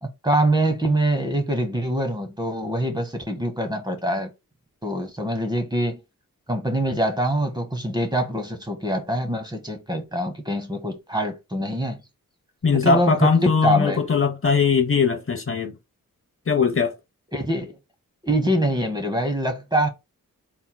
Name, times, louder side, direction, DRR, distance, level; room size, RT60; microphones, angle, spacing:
voice 1, 0.0-4.3 4.8-6.0 6.5-12.0 12.7-14.0 17.3-17.7 18.2-19.9, right 1 dB, 15° right, 1.1 m, -24 dB
voice 2, 12.6-15.7 16.5-16.9, left 5 dB, 40° left, 0.8 m, -20 dB
4.5 x 3.6 x 2.3 m
cardioid pair, 60°, 33 cm